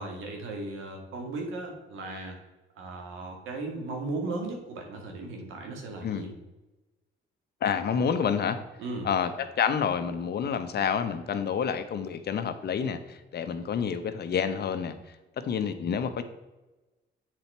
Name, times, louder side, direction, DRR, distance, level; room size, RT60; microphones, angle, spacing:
voice 1, 0.0-2.4 2.8-6.3 8.8-9.1, right 2 dB, 85° right, 2 dB, 1.7 m, -36 dB
voice 2, 6.0-6.3 7.6-8.6 9.0-15.0 15.4-16.2, left 7 dB, 55° left, 9 dB, 0.8 m, -28 dB
7.7 x 4.1 x 4.4 m, 1.1 s
cardioid pair, 90°, 20 cm